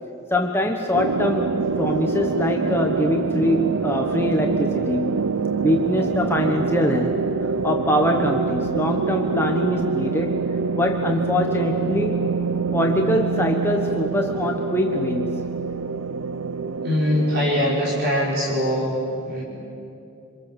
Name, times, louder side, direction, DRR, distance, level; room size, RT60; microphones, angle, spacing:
voice 1, 0.3-10.3 10.7-12.2 12.7-15.5, left 1 dB, 10° left, 2 dB, 1.2 m, -23 dB
sound 1, 0.9-18.0, right 5 dB, 85° right, 0.7 m, -25 dB
voice 2, 16.8-19.4, equal, 50° right, -4 dB, 4.9 m, -22 dB
27.5 x 26.0 x 7.5 m, 2.6 s
head